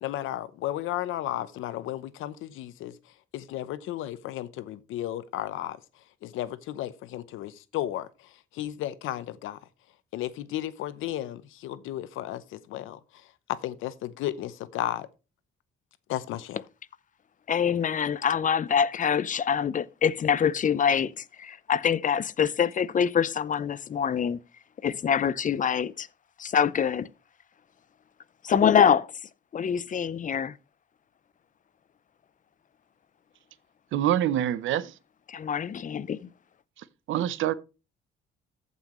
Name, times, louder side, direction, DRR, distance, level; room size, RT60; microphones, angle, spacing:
voice 1, 0.0-2.9 3.3-5.8 6.2-8.1 8.5-9.6 10.1-13.0 13.5-15.1 16.1-16.6, left 13 dB, 90° left, 0.8 m, -33 dB
voice 2, 17.5-24.4 24.8-26.1 26.4-27.1 28.4-29.1 29.5-30.5 35.3-36.3, left 7 dB, 40° left, 0.6 m, -25 dB
voice 3, 33.9-34.9 36.8-37.5, right 11 dB, 80° right, 0.7 m, -26 dB
14.5 x 5.6 x 3.1 m
cardioid pair, 90°, 20 cm